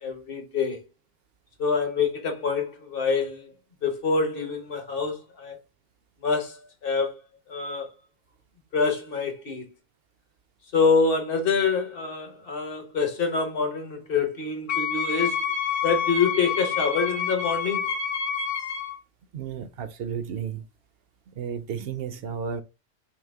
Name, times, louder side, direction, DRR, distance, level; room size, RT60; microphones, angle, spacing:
voice 1, 0.0-0.8 1.6-3.5 3.8-5.6 6.2-7.2 7.5-7.9 8.7-9.7 10.7-15.4 15.8-17.9, left 5 dB, 50° left, 1.2 m, -26 dB
Wind instrument woodwind instrument, 14.7-19.0, left 7 dB, 85° left, 1.0 m, -28 dB
voice 2, 19.3-20.6 21.3-22.6, right 7 dB, 60° right, 0.7 m, -33 dB
5.9 x 2.0 x 3.5 m
omnidirectional pair, 1.2 m